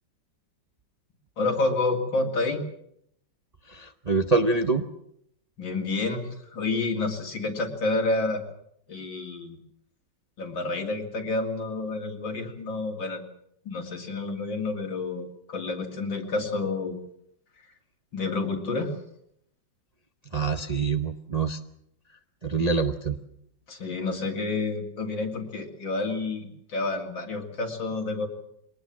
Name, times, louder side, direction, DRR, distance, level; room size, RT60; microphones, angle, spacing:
voice 1, 1.4-2.6 5.6-8.4 8.9-9.6 10.4-13.3 13.7-17.0 18.1-18.9 23.7-28.3, left 3 dB, 85° left, 3 dB, 3.4 m, -29 dB
voice 2, 3.7-4.8 20.3-21.6 22.4-23.2, right 4 dB, 35° right, 6 dB, 0.6 m, -25 dB
22.5 x 19.0 x 7.5 m, 0.73 s
omnidirectional pair, 2.0 m